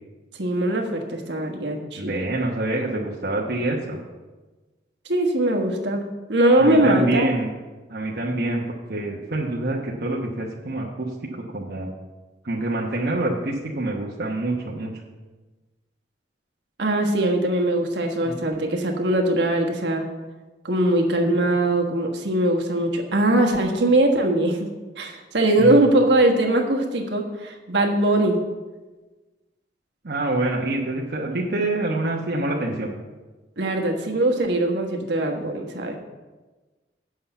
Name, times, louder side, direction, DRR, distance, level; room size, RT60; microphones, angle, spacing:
voice 1, 0.3-2.1 5.0-6.0 6.3-7.3 16.8-20.1 20.6-24.7 25.0-28.4 33.6-36.0, right 1 dB, 75° right, 2 dB, 1.4 m, -21 dB
voice 2, 2.0-4.0 6.6-7.5 7.9-8.6 8.9-11.9 12.4-14.9 18.2-18.3 25.6-25.8 30.0-33.0, right 2 dB, 60° right, -3 dB, 1.0 m, -26 dB
8.0 x 5.7 x 7.9 m, 1.2 s
head